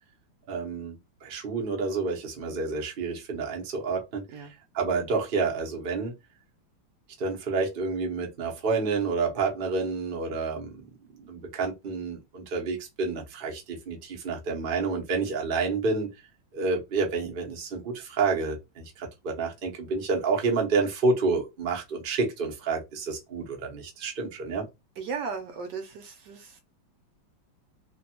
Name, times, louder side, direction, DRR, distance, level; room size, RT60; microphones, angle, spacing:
voice 1, 0.5-4.5 4.7-6.1 7.2-10.7 11.2-16.1 16.5-24.6, right 4 dB, 45° right, 0.7 m, -29 dB
voice 2, 25.0-26.6, right 5 dB, 70° right, 1.2 m, -36 dB
3.1 x 2.2 x 2.8 m
omnidirectional pair, 2.1 m